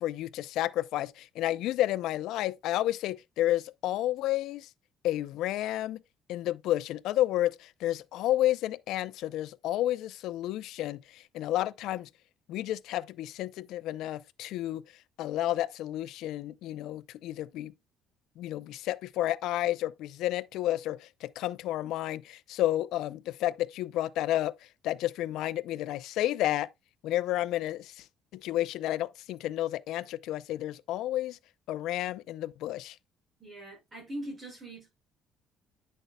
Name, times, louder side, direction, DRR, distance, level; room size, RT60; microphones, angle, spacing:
voice 1, 0.0-4.7 5.0-6.0 6.3-12.1 12.5-14.8 15.2-17.7 18.4-24.5 24.8-26.7 27.0-28.0 28.3-31.4 31.7-33.0, left 14 dB, 70° left, 0.4 m, -31 dB
voice 2, 33.4-34.9, right 1 dB, 20° right, 5.5 m, -41 dB
9.1 x 6.5 x 2.2 m
cardioid pair, 175°, 0 cm